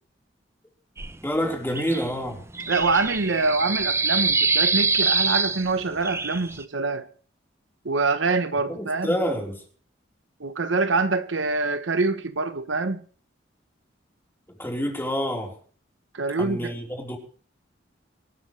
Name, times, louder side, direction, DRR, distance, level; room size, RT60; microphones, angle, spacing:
sound 1, 1.0-1.2 1.6-5.8 6.0-6.6, right 4 dB, 15° right, 0.6 m, -25 dB
voice 1, 1.2-2.4 8.8-9.6 14.6-15.5 16.4-17.2, equal, 10° left, 4.2 m, -27 dB
voice 2, 2.7-7.1 7.8-9.1 10.4-13.0 16.1-16.7, right 3 dB, 70° right, 1.0 m, -25 dB
24.5 x 13.0 x 3.3 m
head